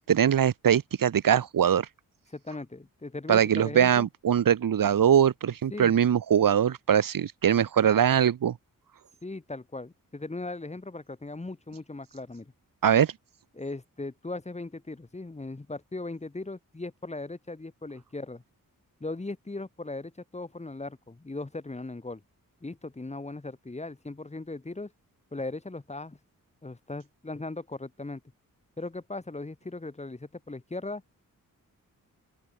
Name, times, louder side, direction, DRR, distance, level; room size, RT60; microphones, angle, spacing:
voice 1, 0.1-1.9 3.3-8.5 12.8-13.1, right 9 dB, 75° right, 1.6 m, -22 dB
voice 2, 2.3-4.1 5.7-6.0 9.2-12.5 13.6-18.4 19.0-22.2 22.6-24.9 25.3-26.2 26.6-28.2 28.8-31.0, left 2 dB, 20° left, 7.9 m, -38 dB
open air
wide cardioid pair, 165°, 33 cm